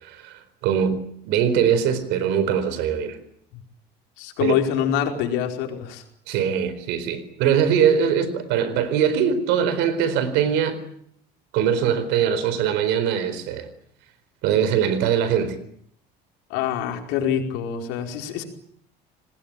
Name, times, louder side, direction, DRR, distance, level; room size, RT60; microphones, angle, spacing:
voice 1, 0.0-3.2 4.4-4.5 6.3-10.8 11.5-13.7 14.4-15.6, right 8 dB, 80° right, 14 dB, 4.3 m, -22 dB
voice 2, 4.2-6.0 16.5-18.4, left 9 dB, 85° left, 3 dB, 4.9 m, -25 dB
26.5 x 19.5 x 9.0 m, 0.67 s
cardioid pair, 110°, 18 cm